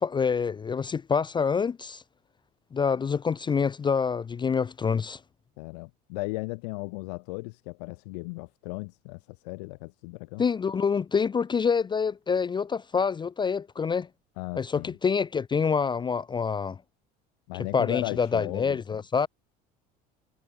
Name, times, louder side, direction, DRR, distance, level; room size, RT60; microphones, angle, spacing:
voice 1, 0.0-2.0 2.7-5.2 10.4-14.1 14.6-16.8 17.7-19.3, left 6 dB, 20° left, 0.5 m, -26 dB
voice 2, 5.6-10.4 14.4-15.0 17.5-18.8, left 28 dB, 80° left, 0.7 m, -36 dB
supercardioid pair, 85°, 20 cm